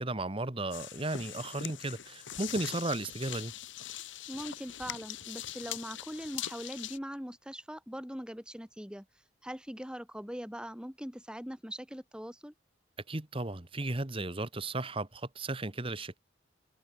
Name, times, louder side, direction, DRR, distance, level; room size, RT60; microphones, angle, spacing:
voice 1, 0.0-3.5 13.1-16.2, right 2 dB, 30° right, 1.4 m, -35 dB
sound 1, 0.7-7.0, left 11 dB, 85° left, 1.3 m, -42 dB
voice 2, 4.3-9.1 9.4-12.5, equal, 5° right, 3.3 m, -41 dB
head